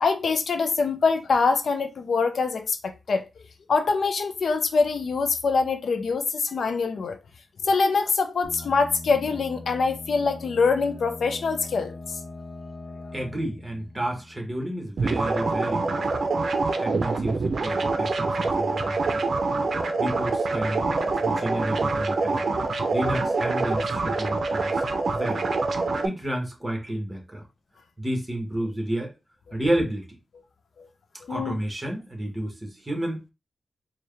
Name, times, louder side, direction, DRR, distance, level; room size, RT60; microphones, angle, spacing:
voice 1, 0.0-3.3 3.7-7.2 7.6-12.2 30.8-30.9 31.2-31.6, left 4 dB, 75° left, 0.5 m, -24 dB
sound 1, 8.4-15.0, left 2 dB, 55° left, 0.9 m, -41 dB
voice 2, 13.1-16.2 16.8-19.2 20.0-20.8 21.2-22.5 22.9-24.8 25.1-25.4 26.0-27.4 28.0-29.1 29.5-30.2 31.3-33.3, right 1 dB, 15° right, 1.4 m, -31 dB
sound 2, 15.0-26.1, right 3 dB, 65° right, 0.5 m, -25 dB
4.5 x 2.3 x 3.3 m
wide cardioid pair, 95°, 0 cm